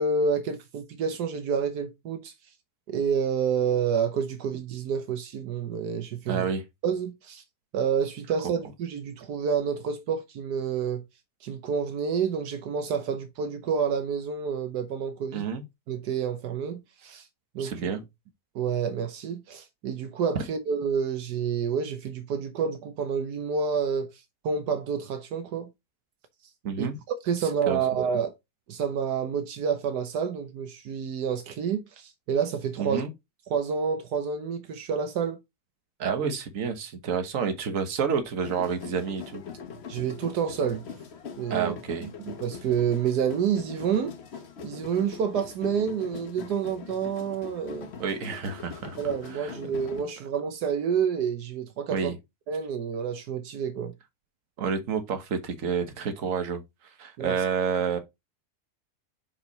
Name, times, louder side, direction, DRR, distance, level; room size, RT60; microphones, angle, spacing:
voice 1, 0.0-2.3 2.9-6.4 6.8-7.4 7.7-11.0 11.4-15.5 15.9-17.2 17.5-17.9 18.5-24.1 24.4-25.7 26.8-26.9 27.3-28.3 28.7-33.0 33.5-35.4 39.9-40.8 41.4-41.7 42.0-44.1 44.6-47.9 49.0-52.1 52.5-53.9 57.2-57.3, right 6 dB, 80° right, 1.5 m, -28 dB
voice 2, 6.3-6.6 15.3-15.6 17.6-18.0 26.6-27.0 27.4-27.8 32.8-33.1 36.0-39.4 41.5-42.1 48.0-49.0 49.3-49.5 51.9-52.2 54.6-58.0, right 6 dB, 55° right, 1.6 m, -29 dB
sound 1, 38.4-50.0, left 6 dB, 50° left, 1.0 m, -42 dB
6.0 x 4.9 x 4.0 m
omnidirectional pair, 1.7 m